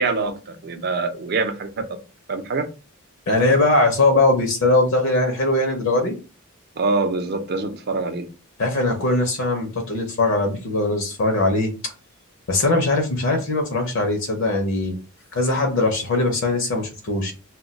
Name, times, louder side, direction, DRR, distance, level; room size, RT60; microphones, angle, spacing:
voice 1, 0.0-2.0 2.3-2.7 6.8-8.3, right 3 dB, 50° right, 0.5 m, -25 dB
voice 2, 3.3-6.1 8.6-11.7 12.5-15.0 15.3-17.3, left 2 dB, 65° left, 0.6 m, -20 dB
2.2 x 2.1 x 3.8 m
head